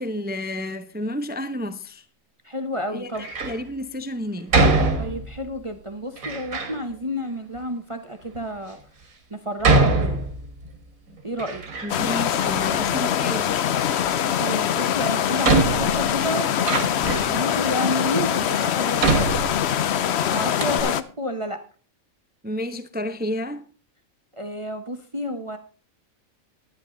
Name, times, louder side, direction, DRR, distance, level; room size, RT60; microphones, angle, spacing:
voice 1, 0.0-2.0 2.9-4.6 11.8-13.5 22.4-23.6, left 1 dB, 10° right, 0.5 m, -31 dB
voice 2, 2.4-3.3 5.0-8.8 9.3-10.2 11.2-11.6 14.4-16.5 17.1-19.4 20.3-21.6 24.3-25.6, equal, 25° right, 0.8 m, -30 dB
Door, 3.1-3.6 4.5-5.5 6.2-6.8 7.6-7.7 8.3-8.4 9.6-10.8 11.1-12.2 12.5-13.3 14.6-14.7 15.4-17.4 18.1-18.2 19.0-20.1 20.3-20.4 20.6-20.8, right 3 dB, 80° right, 2.1 m, -23 dB
sound 1, 11.9-21.0, left 9 dB, 60° left, 0.8 m, -23 dB
12.0 x 10.5 x 3.8 m
omnidirectional pair, 1.4 m